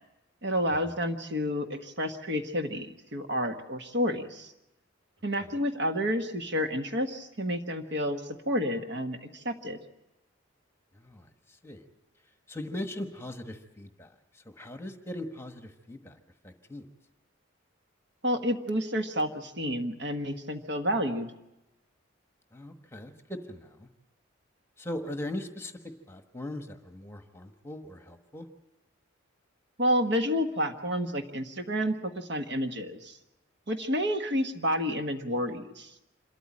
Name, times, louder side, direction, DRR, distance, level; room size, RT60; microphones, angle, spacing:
voice 1, 0.4-4.5 5.2-9.8 18.2-21.3 29.8-33.2 33.7-35.9, equal, 55° right, 5 dB, 1.5 m, -30 dB
voice 2, 10.9-11.3 11.6-11.8 12.5-14.1 14.3-16.2 16.4-16.9 22.5-23.9 24.8-25.7 26.1-28.5, left 1 dB, 10° left, 6 dB, 1.2 m, -39 dB
26.5 x 13.5 x 8.6 m, 0.93 s
head